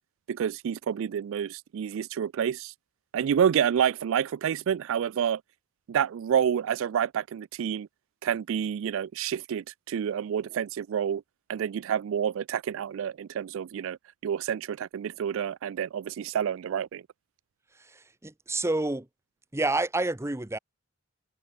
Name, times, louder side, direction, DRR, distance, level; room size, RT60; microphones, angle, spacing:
voice 1, 0.3-2.7 3.1-5.4 5.9-7.9 8.2-11.2 11.5-14.0 14.2-17.0, right 8 dB, 65° right, 0.3 m, -28 dB
voice 2, 17.8-19.1 19.5-20.6, right 2 dB, 15° right, 0.8 m, -29 dB
head